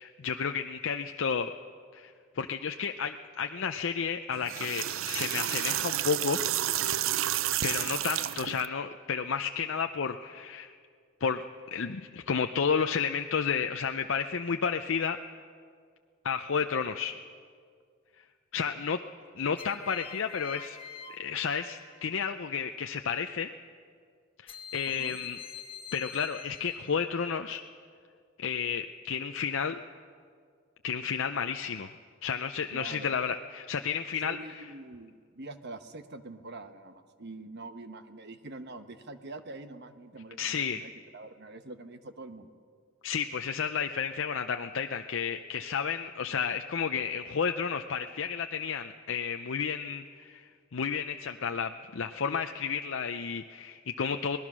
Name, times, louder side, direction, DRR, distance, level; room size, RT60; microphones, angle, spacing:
voice 1, 0.0-1.5 1.9-6.4 7.6-10.7 11.2-11.4 11.7-15.2 16.2-17.2 18.5-19.0 19.4-20.8 21.1-23.5 24.4-25.4 25.9-27.6 28.4-29.8 30.8-31.9 32.2-34.6 40.4-40.8 43.0-54.4, left 6 dB, 65° left, 6 dB, 0.6 m, -32 dB
sound 1, 4.3-8.7, right 12 dB, 70° right, 0.4 m, -30 dB
sound 2, 19.6-22.2 24.5-27.0, left 7 dB, 25° left, 1.2 m, -46 dB
voice 2, 32.7-33.1 34.1-42.5, right 2 dB, 55° right, 9 dB, 1.1 m, -45 dB
25.0 x 19.0 x 6.2 m, 2.1 s
head